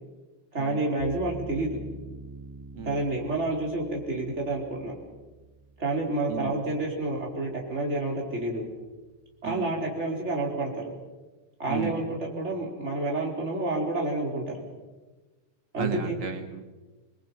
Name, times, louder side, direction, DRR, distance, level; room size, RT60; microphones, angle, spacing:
voice 1, 0.5-1.8 2.8-5.0 5.8-8.7 9.4-10.8 11.6-14.7 15.7-16.2, right 2 dB, 20° right, -1 dB, 4.7 m, -29 dB
sound 1, 1.0-8.1, right 2 dB, 65° left, 9.1 m, -45 dB
voice 2, 11.7-12.0 15.8-16.6, right 6 dB, 40° right, 6 dB, 2.1 m, -34 dB
28.0 x 21.5 x 5.9 m, 1.2 s
omnidirectional pair, 3.4 m